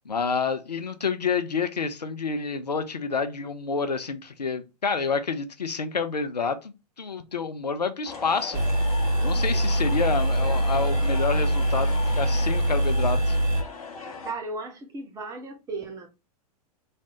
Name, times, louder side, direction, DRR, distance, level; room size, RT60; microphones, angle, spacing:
voice 1, 0.0-13.4, left 5 dB, 85° left, 0.5 m, -29 dB
sound 1, 8.0-14.3, left 4 dB, 60° left, 0.8 m, -38 dB
sound 2, 8.5-13.6, right 1 dB, 40° right, 1.2 m, -23 dB
voice 2, 14.2-16.1, right 3 dB, 15° right, 0.6 m, -35 dB
3.2 x 2.1 x 2.8 m
figure-of-eight pair, 100°, 20 cm